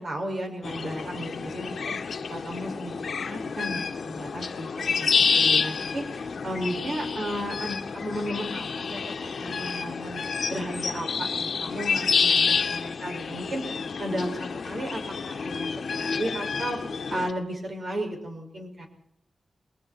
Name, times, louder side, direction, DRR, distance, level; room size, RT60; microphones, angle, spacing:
voice 1, 0.0-2.0 2.3-4.7 5.0-10.2 10.5-16.8 17.1-18.9, right 1 dB, 45° right, 3 dB, 5.6 m, -34 dB
sound 1, 0.6-17.3, left 5 dB, 70° left, 1.5 m, -28 dB
29.5 x 21.0 x 4.3 m, 0.68 s
wide cardioid pair, 145°, 0 cm